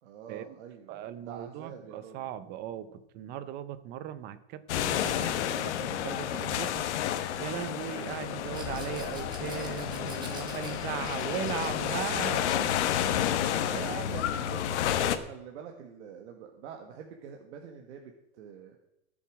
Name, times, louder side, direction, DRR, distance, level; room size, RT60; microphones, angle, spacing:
voice 1, 0.0-2.3 7.6-7.9 13.0-18.8, right 7 dB, 80° right, 3 dB, 1.6 m, -45 dB
voice 2, 0.9-6.9 7.4-12.7 13.1-13.2 13.6-13.7, right 11 dB, 30° right, 14 dB, 0.7 m, -38 dB
sound 1, 4.7-15.2, left 10 dB, 80° left, 1.2 m, -30 dB
sound 2, 8.4-11.9, left 6 dB, 60° left, 2.5 m, -48 dB
Rattle, 8.5-13.6, right 3 dB, 15° right, 1.9 m, -49 dB
19.5 x 7.2 x 4.8 m, 0.88 s
supercardioid pair, 170°, 34 cm